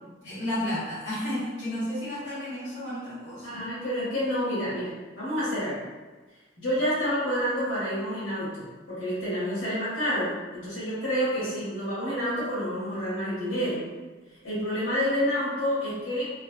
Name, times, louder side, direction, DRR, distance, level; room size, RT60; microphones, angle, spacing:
voice 1, 0.2-3.6, left 1 dB, 65° left, -13 dB, 1.3 m, -32 dB
voice 2, 3.4-5.8 6.6-13.8 14.4-16.3, equal, 85° left, -10 dB, 1.4 m, -28 dB
3.2 x 2.3 x 2.2 m, 1.3 s
head